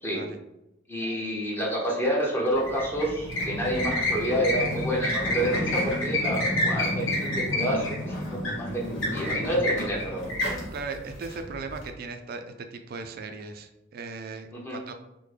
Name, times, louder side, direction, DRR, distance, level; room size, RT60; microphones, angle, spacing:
voice 1, 0.9-8.8 9.1-10.3 14.5-14.8, right 1 dB, 10° left, -3 dB, 0.7 m, -28 dB
sound 1, 2.5-11.8, left 1 dB, 90° left, 1.1 m, -29 dB
voice 2, 10.7-14.9, right 4 dB, 50° right, 6 dB, 0.3 m, -38 dB
3.6 x 2.1 x 3.2 m, 0.88 s
head